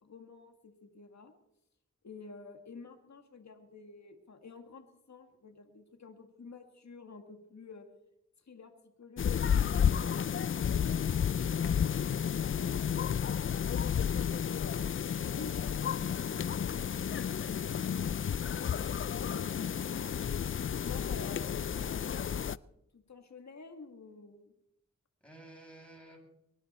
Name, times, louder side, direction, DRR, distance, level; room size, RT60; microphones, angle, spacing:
voice 1, 0.0-1.3 2.0-7.9 8.5-8.7 9.0-13.2 13.9-16.0 19.1-19.5 20.7-21.5 21.8-22.6 22.9-24.4, left 4 dB, 65° left, 5 dB, 2.0 m, -50 dB
sound 1, 9.2-22.6, left 8 dB, 45° left, 0.4 m, -31 dB
voice 2, 25.2-26.2, right 1 dB, 5° left, -2 dB, 7.4 m, -54 dB
23.5 x 10.0 x 4.3 m, 0.83 s
cardioid pair, 45°, 29 cm